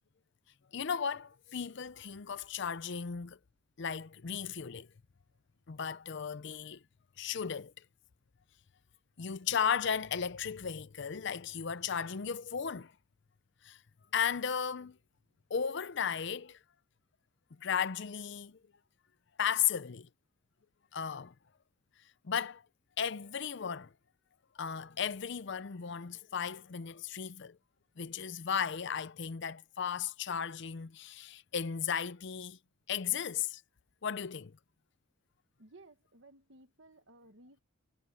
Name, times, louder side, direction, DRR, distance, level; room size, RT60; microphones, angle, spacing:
voice 1, 0.7-3.4 3.8-4.9 5.7-6.8 7.2-7.7 9.2-12.9 13.6-13.8 14.1-15.0 15.5-16.6 17.6-18.6 19.4-20.1 20.9-21.3 22.2-22.6 23.0-23.9 24.6-27.6 28.0-32.6 32.9-33.6 34.0-34.5, left 7 dB, 55° left, 0.6 m, -35 dB
voice 2, 35.6-37.6, right 2 dB, 60° right, 1.5 m, -58 dB
head